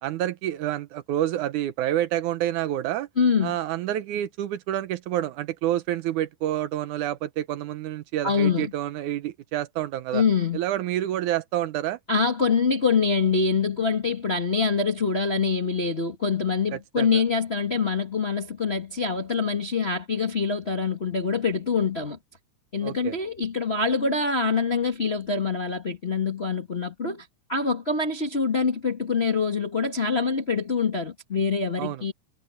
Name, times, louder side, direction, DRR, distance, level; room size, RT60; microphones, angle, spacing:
voice 1, 0.0-3.1 3.4-10.2 10.5-12.0 16.7-17.2 22.8-23.2 31.8-32.0, right 12 dB, 75° right, 2.2 m, -28 dB
voice 2, 3.2-3.6 8.2-8.7 10.1-10.6 12.1-22.2 22.7-32.1, left 5 dB, 35° left, 1.0 m, -25 dB
omnidirectional pair, 3.8 m